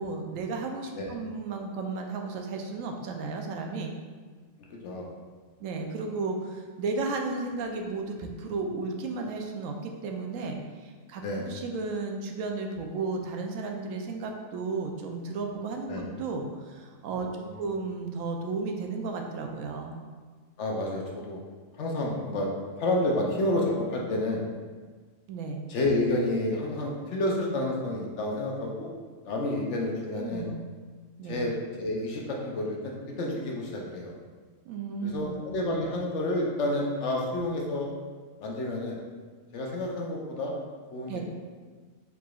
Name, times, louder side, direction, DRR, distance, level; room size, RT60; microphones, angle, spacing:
voice 1, 0.0-3.9 5.6-17.3 17.6-20.0 25.3-25.6 30.1-30.6 31.2-31.4 34.7-35.4 41.1-41.2, right 3 dB, 80° right, 2 dB, 1.0 m, -34 dB
voice 2, 4.7-5.1 11.2-11.5 15.9-16.1 17.3-17.7 20.6-21.4 21.8-22.5 22.8-24.4 25.7-28.9 29.2-30.5 31.2-34.1 35.0-37.9 38.4-39.0 39.5-40.5 40.9-41.2, left 1 dB, 65° left, -1 dB, 0.9 m, -30 dB
4.7 x 3.9 x 2.4 m, 1.5 s
omnidirectional pair, 1.4 m